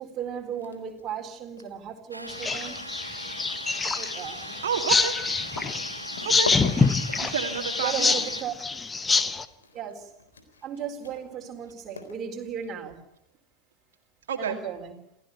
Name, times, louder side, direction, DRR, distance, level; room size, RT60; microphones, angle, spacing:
voice 1, 0.0-2.9 3.9-4.4 7.8-8.5 9.7-10.1 10.6-13.1 14.4-15.0, right 8 dB, 25° right, 2 dB, 4.5 m, -35 dB
sound 1, 0.6-1.0 1.4-12.6, left 4 dB, 70° left, 3.8 m, -42 dB
Domestic sounds home sounds, 2.1-8.4, right 1 dB, 85° right, 1.4 m, -40 dB
sound 2, 2.3-9.4, left 4 dB, 15° left, 1.1 m, -26 dB
voice 2, 4.6-5.1 5.7-5.8 6.2-6.5 7.2-8.1 14.3-14.6, right 7 dB, 60° right, 2 dB, 2.4 m, -29 dB
28.5 x 16.0 x 9.2 m, 0.83 s
figure-of-eight pair, 90°, 0 cm